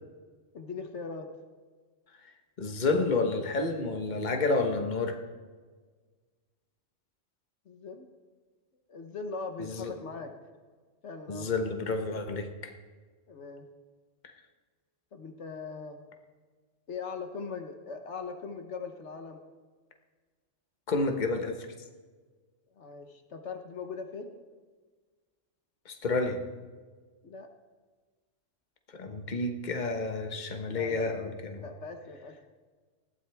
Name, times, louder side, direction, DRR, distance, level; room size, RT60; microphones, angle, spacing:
voice 1, 0.5-1.3 7.7-8.1 8.9-10.3 11.0-11.5 13.3-13.7 15.1-16.0 16.9-19.4 22.8-24.3 27.2-27.5 30.7-31.2 31.6-32.3, left 4 dB, 65° left, 5 dB, 1.3 m, -40 dB
voice 2, 2.6-5.2 9.6-9.9 11.3-12.7 20.9-21.7 25.8-26.4 28.9-31.6, left 3 dB, 40° left, 5 dB, 1.3 m, -30 dB
20.0 x 15.5 x 3.5 m, 1.5 s
omnidirectional pair, 1.3 m